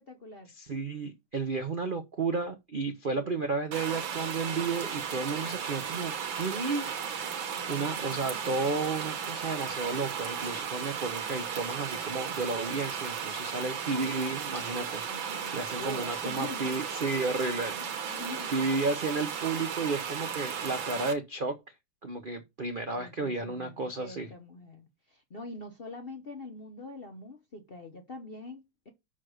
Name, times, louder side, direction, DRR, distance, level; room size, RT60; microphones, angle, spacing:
voice 1, 0.0-0.5 3.1-3.5 7.5-8.4 15.1-16.8 17.7-18.5 22.8-28.9, left 2 dB, 50° left, 0.6 m, -44 dB
voice 2, 0.6-6.9 7.6-15.0 15.5-17.7 18.5-21.6 22.0-24.3, right 3 dB, 85° right, 0.4 m, -32 dB
sound 1, 3.7-21.1, right 7 dB, 70° right, 1.8 m, -35 dB
6.3 x 4.1 x 6.3 m
omnidirectional pair, 2.3 m